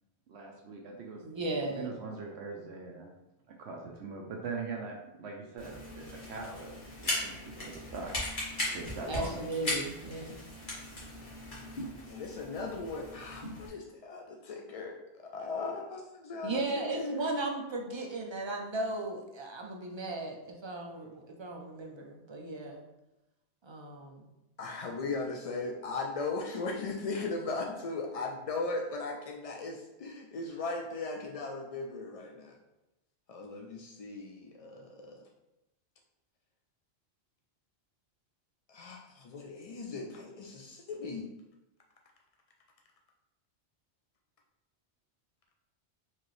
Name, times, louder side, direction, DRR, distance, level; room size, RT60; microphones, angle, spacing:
voice 1, 0.3-1.2 1.7-3.1 3.6-6.7 7.0-8.1 8.7-9.4, right 4 dB, 75° right, 0 dB, 0.8 m, -41 dB
voice 2, 1.2-1.9 9.1-10.4 16.4-22.8 23.6-24.3, right 2 dB, 40° right, 1 dB, 0.4 m, -36 dB
sound 1, 5.6-13.7, left 1 dB, 45° left, 1.5 m, -38 dB
voice 3, 8.7-9.2 12.1-17.2 24.6-32.6 33.3-35.2 38.7-41.3, left 3 dB, 70° left, 1 dB, 0.3 m, -38 dB
4.5 x 2.9 x 3.1 m, 0.97 s
omnidirectional pair, 1.2 m